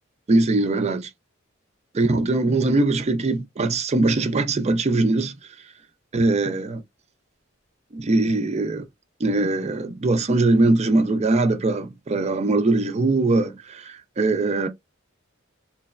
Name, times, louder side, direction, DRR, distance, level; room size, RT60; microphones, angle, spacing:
voice 1, 0.3-1.1 1.9-5.4 6.1-6.8 7.9-8.8 9.2-14.7, right 2 dB, 35° right, 0.5 m, -21 dB
3.1 x 2.1 x 2.4 m
head